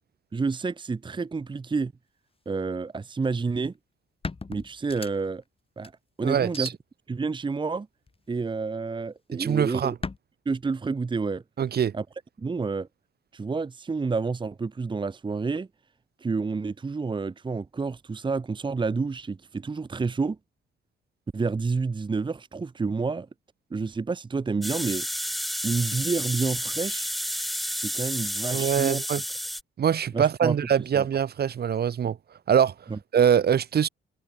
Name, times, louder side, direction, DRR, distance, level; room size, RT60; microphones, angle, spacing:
voice 1, 0.3-1.9 2.5-3.7 4.5-5.4 5.8-5.9 6.2-6.7 7.1-7.9 8.3-9.9 10.5-11.4 11.9-12.0 12.4-12.9 13.3-15.7 16.2-20.4 21.3-23.3 23.7-25.1 25.6-27.1 27.8-29.0 30.1-30.6 31.0-31.1 32.9-33.0, right 4 dB, 25° right, 1.1 m, -29 dB
sound 1, 3.6-3.7 4.2-5.4 5.8-5.9 6.5-6.7 8.1-8.5 10.0-10.2, left 4 dB, 30° left, 5.9 m, -36 dB
voice 2, 6.2-6.7 9.4-9.9 11.6-11.9 28.5-29.2 29.8-32.2 32.5-32.7 33.1-33.9, right 8 dB, 55° right, 2.1 m, -23 dB
sound 2, 24.6-29.6, equal, ahead, 0.8 m, -31 dB
cardioid pair, 90°, 20 cm